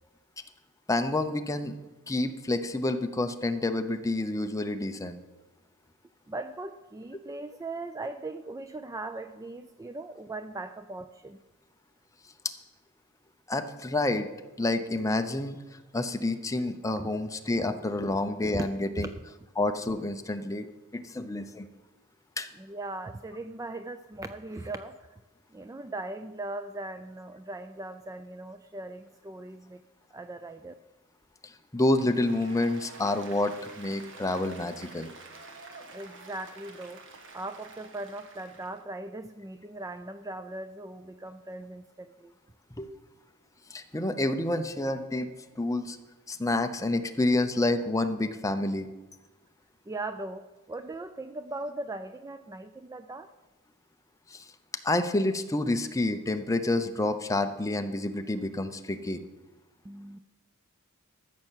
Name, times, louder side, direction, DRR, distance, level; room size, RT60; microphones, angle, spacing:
voice 1, 0.9-1.7 2.1-5.2 13.5-14.3 14.6-15.6 15.9-19.1 19.6-20.7 20.9-21.7 22.4-22.5 31.4-35.1 42.8-42.9 43.7-45.3 45.6-46.0 46.3-48.9 54.3-54.5 54.8-59.2, left 2 dB, 15° left, 7 dB, 0.7 m, -28 dB
voice 2, 6.3-11.4 17.0-17.1 18.0-18.1 18.5-18.7 19.0-19.1 22.6-25.0 25.5-29.8 30.1-30.7 35.9-37.0 37.3-42.3 49.9-53.3 59.8-60.2, right 2 dB, 15° right, 10 dB, 0.3 m, -39 dB
Applause, 31.8-38.8, right 3 dB, 60° right, 1.4 m, -49 dB
13.5 x 6.6 x 7.4 m, 1.2 s
head